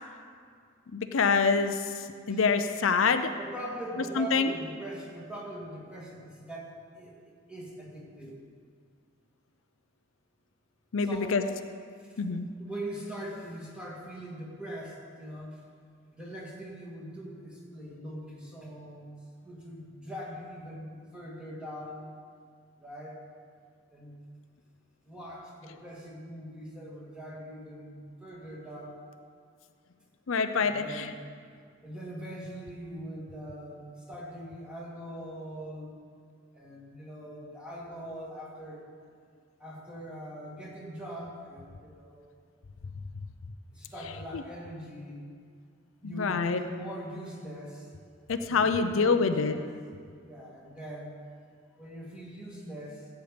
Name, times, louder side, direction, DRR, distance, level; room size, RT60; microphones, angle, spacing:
voice 1, 0.9-1.8 2.3-3.3 4.2-4.5 10.9-11.4 12.2-12.5 30.3-31.1 46.0-46.6 48.3-49.6, left 5 dB, 80° left, 8 dB, 0.6 m, -25 dB
voice 2, 3.3-8.4 11.0-11.4 12.6-15.6 16.1-22.1 22.8-23.2 23.9-24.2 25.0-29.1 30.5-31.2 31.8-35.9 36.5-38.8 39.6-42.3 43.7-45.2 46.0-47.9 48.5-49.7 50.3-51.2 51.7-53.1, right 1 dB, 5° right, -5 dB, 2.2 m, -42 dB
15.5 x 8.3 x 5.2 m, 2.1 s
head